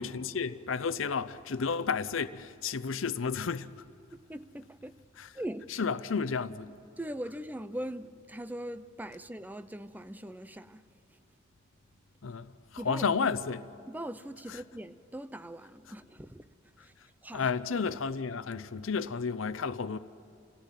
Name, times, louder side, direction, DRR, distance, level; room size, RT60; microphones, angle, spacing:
voice 1, 0.0-3.7 5.2-5.3 5.7-6.7 12.2-13.7 17.3-20.0, left 5 dB, 90° left, 0.6 m, -32 dB
voice 2, 4.1-5.0 5.3-5.8 7.0-10.8 11.1-11.2 12.8-13.1 13.9-16.5 16.8-16.9 17.2-17.5, right 1 dB, 10° right, 0.6 m, -41 dB
28.5 x 17.0 x 9.1 m
head